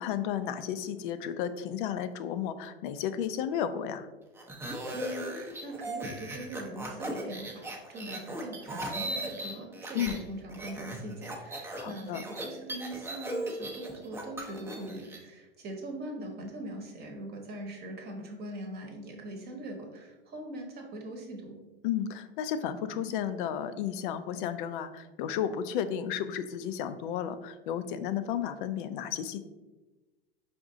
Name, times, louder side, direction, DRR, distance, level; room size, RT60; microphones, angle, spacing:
voice 1, 0.0-4.1 9.9-10.2 11.7-12.2 21.8-29.4, left 9 dB, 55° left, 11 dB, 0.5 m, -33 dB
sound 1, 4.4-10.2 10.5-15.2, right 1 dB, 10° right, 0.5 m, -38 dB
voice 2, 4.9-21.6, right 1 dB, 30° right, 2 dB, 0.9 m, -42 dB
5.0 x 2.6 x 3.7 m, 1.1 s
hypercardioid pair, 115°, 31 cm